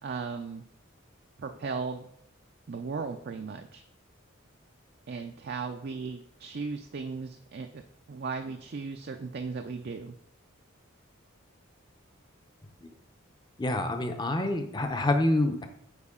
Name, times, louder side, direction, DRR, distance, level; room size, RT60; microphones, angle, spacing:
voice 1, 0.0-0.6 1.4-2.1 2.7-3.8 5.1-10.1, right 4 dB, 50° right, 5 dB, 0.4 m, -36 dB
voice 2, 13.6-15.7, left 1 dB, 20° left, 6 dB, 0.6 m, -27 dB
8.2 x 4.7 x 3.7 m, 0.71 s
head